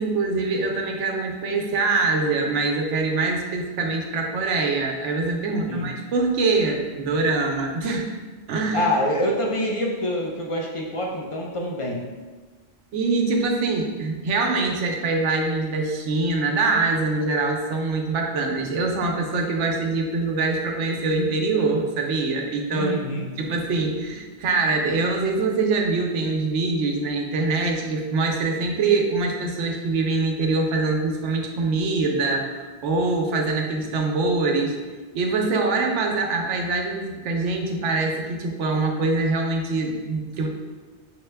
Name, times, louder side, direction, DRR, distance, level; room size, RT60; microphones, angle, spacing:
voice 1, 0.0-8.1 8.5-8.9 12.9-22.9 23.4-34.7 35.1-40.5, right 3 dB, 80° right, 2 dB, 1.0 m, -24 dB
voice 2, 8.7-12.1 22.7-23.3, left 1 dB, 45° left, -1 dB, 0.4 m, -26 dB
6.2 x 2.2 x 3.3 m, 1.4 s
omnidirectional pair, 1.2 m